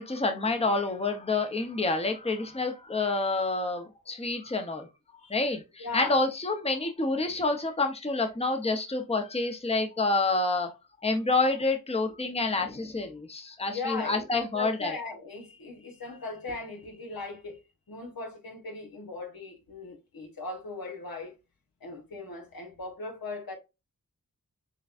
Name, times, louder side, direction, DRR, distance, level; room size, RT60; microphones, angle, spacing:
voice 1, 0.0-4.9 5.3-10.7 11.0-14.9, left 3 dB, 15° left, 0.8 m, -28 dB
voice 2, 5.8-6.2 13.6-21.3 21.8-23.5, left 3 dB, 75° left, 1.4 m, -39 dB
6.6 x 2.3 x 2.5 m
cardioid pair, 45°, 35 cm